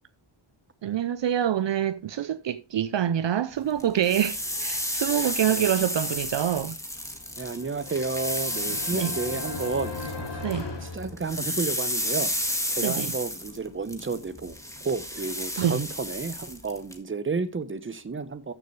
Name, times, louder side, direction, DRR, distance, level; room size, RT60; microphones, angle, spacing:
voice 1, 0.8-6.8 8.9-9.1 10.4-10.7 12.8-13.1 15.6-15.8, right 10 dB, 60° right, 0.7 m, -26 dB
sound 1, 3.8-10.6 10.9-17.0, left 1 dB, 5° left, 1.7 m, -32 dB
voice 2, 5.2-5.7 7.4-10.5 10.8-12.3 12.7-18.5, right 4 dB, 25° right, 1.0 m, -32 dB
sound 2, 7.4-11.8, left 2 dB, 55° left, 3.2 m, -38 dB
13.5 x 7.0 x 3.2 m
wide cardioid pair, 95°, 49 cm